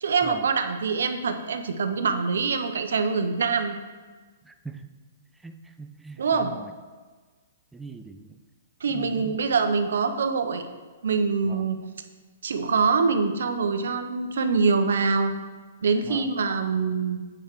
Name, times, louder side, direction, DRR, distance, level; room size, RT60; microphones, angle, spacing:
voice 1, 0.0-3.8 6.2-6.5 8.8-10.6 11.0-11.8 12.4-15.3 15.8-17.2, right 5 dB, 80° right, 8 dB, 0.7 m, -24 dB
voice 2, 4.4-4.8 5.4-6.7 7.7-8.4 8.9-9.4 11.4-11.7 16.0-16.3, right 3 dB, 5° right, 7 dB, 0.3 m, -42 dB
7.9 x 4.4 x 4.8 m, 1.4 s
hypercardioid pair, 165°, 0 cm